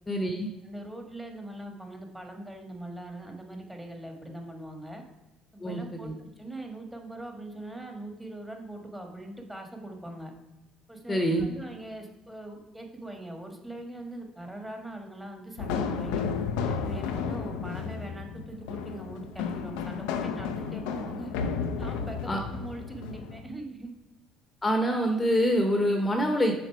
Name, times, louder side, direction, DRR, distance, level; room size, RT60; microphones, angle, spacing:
voice 1, 0.1-0.5 5.6-6.1 11.1-11.5 22.3-22.4 24.6-26.5, equal, 20° left, 4 dB, 1.0 m, -25 dB
voice 2, 0.6-5.0 5.5-10.3 10.9-16.3 16.7-21.4 21.8-23.9, right 1 dB, 10° right, 2 dB, 1.5 m, -41 dB
sound 1, 15.6-23.4, left 6 dB, 80° left, 0.6 m, -33 dB
6.6 x 4.1 x 4.6 m, 1.1 s
hypercardioid pair, 65°, 0 cm